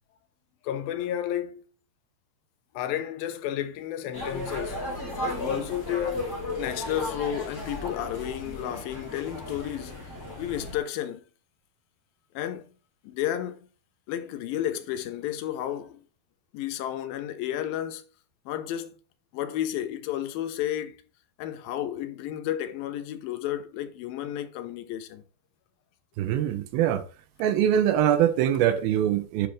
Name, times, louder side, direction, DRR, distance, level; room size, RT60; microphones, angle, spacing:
voice 1, 0.6-1.7 2.7-4.9 5.2-10.1 10.4-11.2 12.4-12.7 13.0-13.6 14.1-16.0 16.5-18.0 18.5-18.9 19.3-21.0 21.4-25.2, left 11 dB, 80° left, 2.4 m, -32 dB
sound 1, 4.1-10.8, left 1 dB, 20° left, 3.4 m, -35 dB
voice 2, 26.2-27.0 27.4-29.5, right 10 dB, 80° right, 2.5 m, -23 dB
9.8 x 5.8 x 3.2 m
omnidirectional pair, 4.4 m